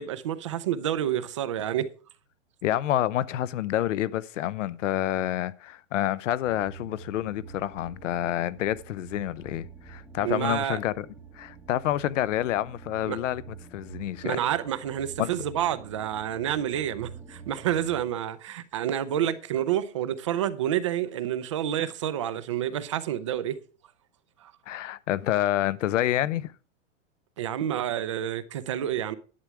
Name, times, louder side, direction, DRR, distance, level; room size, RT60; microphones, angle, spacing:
voice 1, 0.0-1.9 10.2-10.8 13.1-13.2 14.2-23.6 24.4-24.5 27.4-29.1, right 11 dB, 25° right, 0.4 m, -29 dB
voice 2, 2.6-11.1 11.3-14.4 15.2-15.3 24.7-26.5, left 13 dB, 70° left, 0.8 m, -28 dB
sound 1, 6.4-18.0, right 5 dB, ahead, 0.8 m, -47 dB
11.5 x 8.5 x 4.6 m
supercardioid pair, 175°, 38 cm